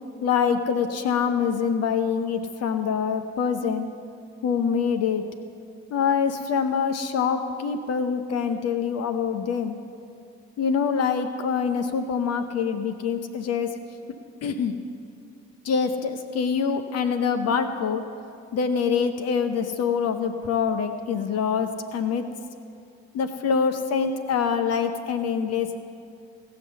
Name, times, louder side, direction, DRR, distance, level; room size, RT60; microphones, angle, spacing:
voice 1, 0.2-3.9 4.4-5.3 5.9-9.8 10.6-13.7 14.4-14.8 15.6-18.0 18.5-22.3 23.1-25.8, left 6 dB, 50° left, 8 dB, 0.8 m, -25 dB
17.0 x 5.8 x 6.8 m, 2.4 s
figure-of-eight pair, 50°, 33 cm